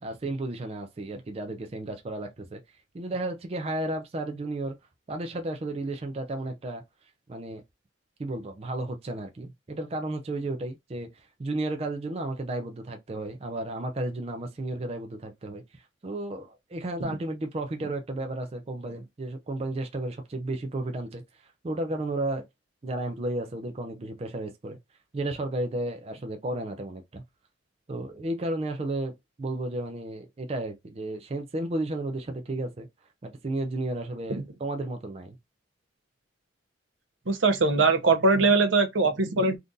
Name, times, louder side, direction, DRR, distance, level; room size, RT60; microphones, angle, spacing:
voice 1, 0.0-2.6 2.9-4.8 5.1-6.8 7.3-7.6 8.2-22.5 22.8-24.8 25.1-27.2 27.9-32.9 33.2-35.4, right 2 dB, 30° right, 0.4 m, -33 dB
voice 2, 37.3-39.6, right 3 dB, 75° right, 0.7 m, -21 dB
3.6 x 2.5 x 2.6 m
head